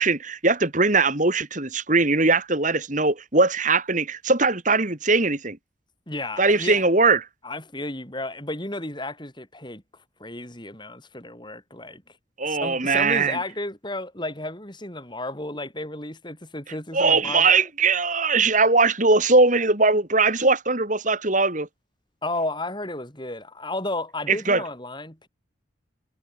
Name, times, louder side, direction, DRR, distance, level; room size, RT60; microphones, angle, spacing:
voice 1, 0.0-5.6 6.4-7.3 12.4-13.4 16.9-21.7 24.3-24.6, right 3 dB, 40° right, 2.8 m, -20 dB
voice 2, 6.1-6.9 7.4-9.8 10.2-12.0 12.4-17.6 22.2-25.3, left 2 dB, 20° left, 6.4 m, -33 dB
head